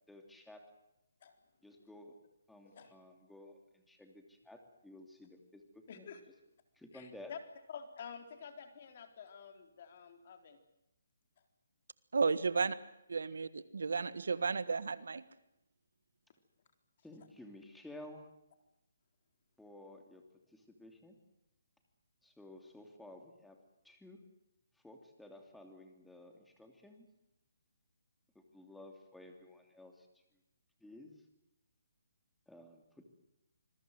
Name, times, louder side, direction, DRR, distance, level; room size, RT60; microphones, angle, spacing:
voice 1, 0.1-0.7 1.6-2.2 2.5-6.1 6.7-7.3 17.0-18.3 19.6-20.2 20.5-21.2 22.2-23.6 23.8-24.2 24.7-27.1 28.3-30.1 30.8-31.2 32.5-33.0, left 1 dB, ahead, 3 dB, 2.9 m, -54 dB
voice 2, 5.9-6.2 6.9-7.4 7.7-10.6 12.3-12.4, left 7 dB, 45° left, 7 dB, 3.9 m, -49 dB
voice 3, 12.1-12.8 13.1-15.2, right 4 dB, 80° right, 15 dB, 1.5 m, -33 dB
26.5 x 21.5 x 7.9 m, 0.87 s
hypercardioid pair, 160°, 0 cm